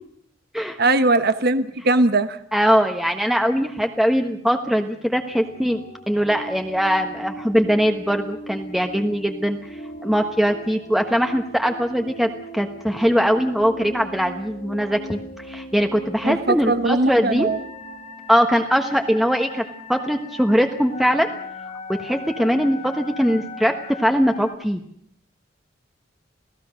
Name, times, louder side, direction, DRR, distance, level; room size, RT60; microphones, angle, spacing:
voice 1, 0.8-2.4 16.2-17.6, right 2 dB, 55° right, 11 dB, 1.1 m, -20 dB
voice 2, 2.5-9.6 10.0-17.5 18.3-19.6 19.9-21.3 21.9-24.8, equal, ahead, 4 dB, 1.3 m, -21 dB
sound 1, 5.3-24.6, left 1 dB, 45° left, 1.8 m, -38 dB
28.5 x 17.5 x 6.4 m, 0.69 s
head